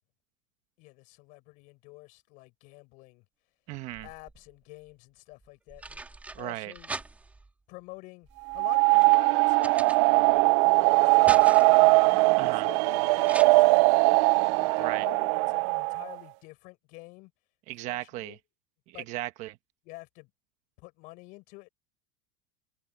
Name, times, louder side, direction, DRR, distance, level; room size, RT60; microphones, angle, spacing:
voice 1, 0.8-3.2 4.0-6.0 6.4-6.9 7.7-8.3 8.5-17.3 17.9-18.4 18.9-19.1 19.8-20.3 20.8-21.7, left 24 dB, 55° left, 6.3 m, -48 dB
sound 1, 3.7-4.5 5.4-7.5 8.2-10.5 10.8-11.9 13.2-13.4, right 3 dB, 10° right, 2.8 m, -41 dB
voice 2, 3.7-4.1 6.3-6.7 12.4-12.7 14.8-15.1 17.7-18.4 18.9-19.6, right 17 dB, 45° right, 1.3 m, -36 dB
sound 2, 8.5-16.1, right 27 dB, 65° right, 0.4 m, -21 dB
supercardioid pair, 155°, 16 cm